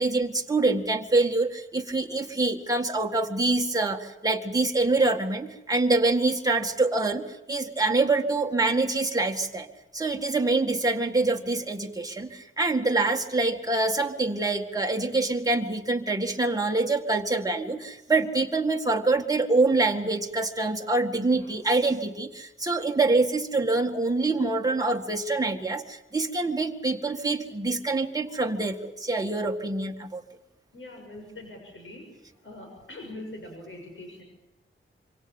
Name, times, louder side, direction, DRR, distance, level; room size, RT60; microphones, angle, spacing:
voice 1, 0.0-9.7 9.9-30.2, right 3 dB, 15° right, 2 dB, 1.9 m, -25 dB
voice 2, 30.7-32.0 32.4-34.2, left 2 dB, 70° left, 2 dB, 6.7 m, -42 dB
26.0 x 24.5 x 7.2 m, 0.89 s
wide cardioid pair, 130°, 21 cm